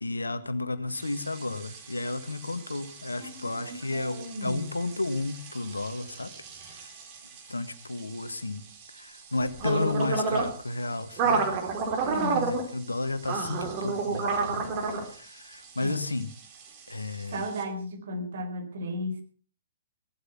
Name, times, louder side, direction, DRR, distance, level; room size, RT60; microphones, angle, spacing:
voice 1, 0.0-6.3 6.6-6.9 7.5-8.6 8.9-11.5 12.3-14.6 14.9-16.3 16.9-17.4, left 2 dB, 80° left, 11 dB, 1.6 m, -32 dB
sound 1, 1.0-17.6, right 4 dB, 35° right, 4.4 m, -33 dB
voice 2, 3.2-4.6 12.0-12.5 15.8-16.0 17.3-19.2, equal, 55° right, 5 dB, 4.4 m, -35 dB
17.5 x 12.0 x 5.9 m, 0.41 s
figure-of-eight pair, 115°, 0 cm